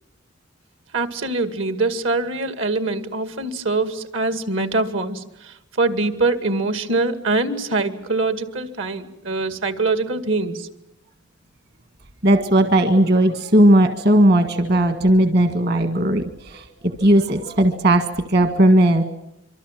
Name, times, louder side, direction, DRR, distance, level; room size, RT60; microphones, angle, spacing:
voice 1, 0.9-10.7, right 3 dB, 75° right, 9 dB, 2.2 m, -23 dB
voice 2, 12.2-19.0, right 1 dB, 55° right, 7 dB, 1.6 m, -17 dB
26.0 x 24.5 x 7.5 m, 0.85 s
head